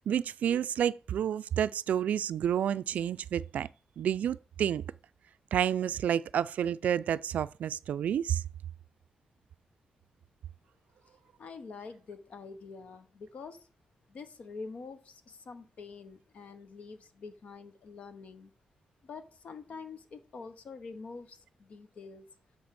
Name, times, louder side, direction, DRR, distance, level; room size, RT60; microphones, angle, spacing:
voice 1, 0.0-3.7 4.0-4.8 5.5-8.4, right 9 dB, 80° right, 0.3 m, -30 dB
voice 2, 11.4-13.7 14.1-18.5 19.0-22.2, left 4 dB, 60° left, 1.0 m, -46 dB
7.9 x 4.0 x 6.8 m
wide cardioid pair, 150°, 3 cm